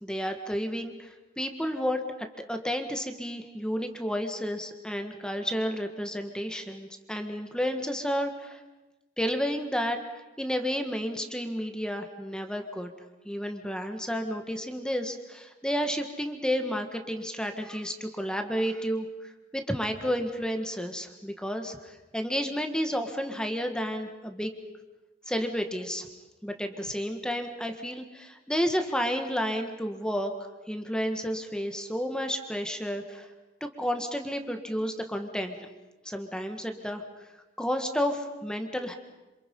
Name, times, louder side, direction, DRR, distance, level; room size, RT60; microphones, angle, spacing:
voice 1, 0.0-1.1 1.4-8.6 9.2-10.0 10.4-12.9 13.3-24.5 25.3-26.1 26.4-30.3 30.7-33.3 33.6-35.6 36.1-37.0 37.6-38.9, equal, 5° left, 5 dB, 1.7 m, -31 dB
27.5 x 27.5 x 5.5 m, 1.1 s
head